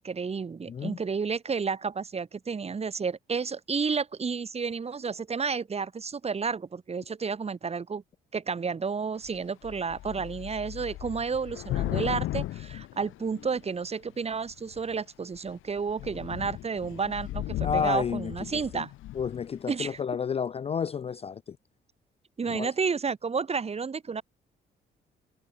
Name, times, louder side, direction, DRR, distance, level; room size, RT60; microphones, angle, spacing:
voice 1, 0.0-8.0 8.3-18.9 19.7-20.0 22.4-24.2, right 5 dB, 30° right, 1.3 m, -31 dB
voice 2, 0.7-1.0 17.6-18.8 19.1-21.6 22.5-22.7, left 7 dB, 30° left, 0.4 m, -31 dB
Thunder / Rain, 9.2-9.4 9.6-13.8 14.5-14.9 15.3-15.5 15.8-19.5, left 15 dB, 85° left, 2.7 m, -36 dB
cardioid pair, 90°, 20 cm